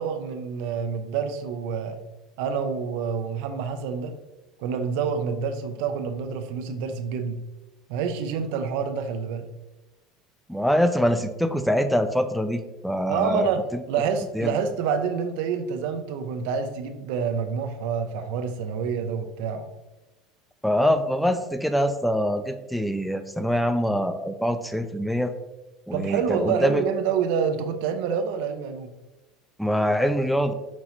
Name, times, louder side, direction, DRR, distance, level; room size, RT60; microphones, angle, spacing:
voice 1, 0.0-2.0 2.4-4.1 4.6-7.4 7.9-9.5 13.1-19.7 25.9-28.9, right 6 dB, 75° right, 8 dB, 0.4 m, -27 dB
voice 2, 10.5-13.5 14.3-14.5 20.6-25.3 25.9-26.8 29.6-30.5, equal, ahead, 9 dB, 0.3 m, -24 dB
5.9 x 2.6 x 2.9 m, 1.0 s
supercardioid pair, 115°, 0 cm